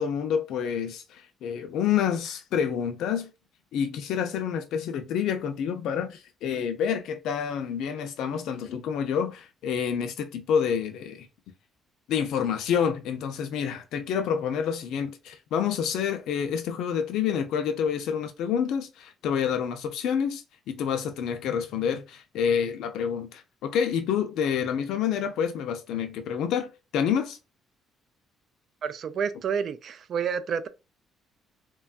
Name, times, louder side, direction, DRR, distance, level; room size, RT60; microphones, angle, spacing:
voice 1, 0.0-3.3 3.7-11.3 12.1-27.4, left 7 dB, 80° left, 0.5 m, -28 dB
voice 2, 28.8-30.7, right 7 dB, 50° right, 0.3 m, -29 dB
3.0 x 2.3 x 2.4 m
cardioid pair, 125°, 0 cm